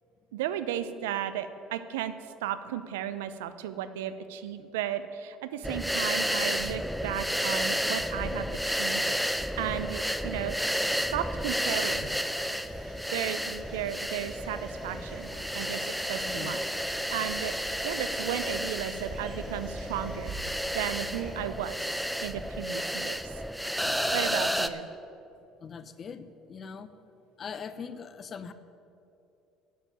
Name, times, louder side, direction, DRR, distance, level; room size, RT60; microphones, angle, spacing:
voice 1, 0.3-2.1 2.4-10.6 11.1-12.1 13.1-15.3 15.5-16.6 17.1-17.5 17.8-20.3 20.7-23.4 24.1-24.9, right 10 dB, 80° right, 12 dB, 0.6 m, -34 dB
sound 1, 5.6-24.7, equal, ahead, 0.7 m, -31 dB
sound 2, 6.4-7.4, left 4 dB, 70° left, 2.9 m, -54 dB
sound 3, 11.4-21.3, right 2 dB, 50° right, 3.3 m, -47 dB
voice 2, 16.2-16.5 25.6-26.9 27.4-28.5, left 6 dB, 45° left, 12 dB, 0.8 m, -41 dB
10.5 x 7.4 x 9.3 m, 2.8 s
hypercardioid pair, 65°, 0 cm